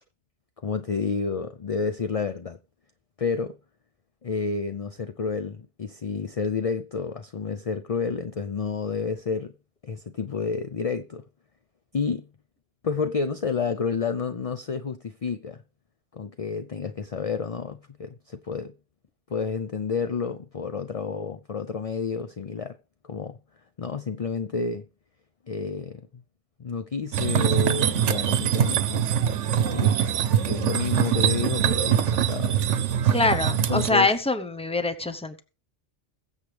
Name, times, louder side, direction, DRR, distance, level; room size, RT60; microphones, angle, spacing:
voice 1, 0.6-2.6 3.2-3.6 4.2-9.5 9.8-11.2 11.9-12.3 12.8-15.6 16.1-18.7 19.3-22.8 23.0-23.4 23.8-24.9 25.5-26.2 26.6-29.1 29.7-32.6 33.7-34.1, left 5 dB, 40° left, 0.5 m, -30 dB
sound 1, 27.1-33.9, right 9 dB, 85° right, 1.1 m, -23 dB
voice 2, 33.1-35.4, left 3 dB, 5° left, 0.8 m, -24 dB
21.5 x 7.3 x 3.4 m
omnidirectional pair, 1.2 m